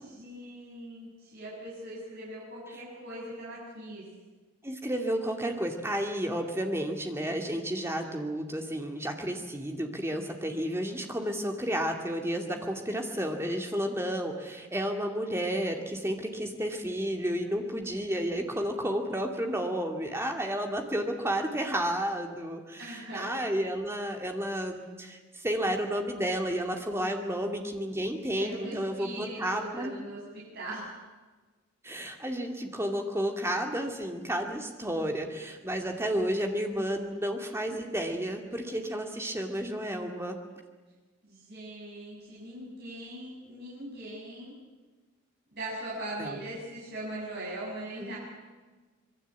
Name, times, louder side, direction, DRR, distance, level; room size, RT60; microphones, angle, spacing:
voice 1, 0.0-4.0 22.8-23.3 28.3-30.9 41.2-44.5 45.5-48.2, right 1 dB, 45° right, -7 dB, 7.9 m, -40 dB
voice 2, 4.6-30.0 31.8-40.4 46.2-46.4 48.0-48.1, equal, 10° right, 3 dB, 2.4 m, -31 dB
26.0 x 22.5 x 8.4 m, 1.3 s
head